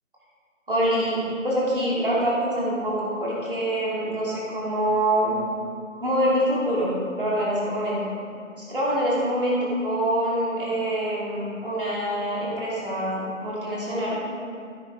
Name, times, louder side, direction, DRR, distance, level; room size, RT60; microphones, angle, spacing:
voice 1, 0.7-5.3 6.0-8.0 8.6-9.6 9.8-14.2, right 1 dB, 45° right, -7 dB, 3.2 m, -25 dB
15.5 x 8.3 x 3.9 m, 2.2 s
figure-of-eight pair, 180°, 39 cm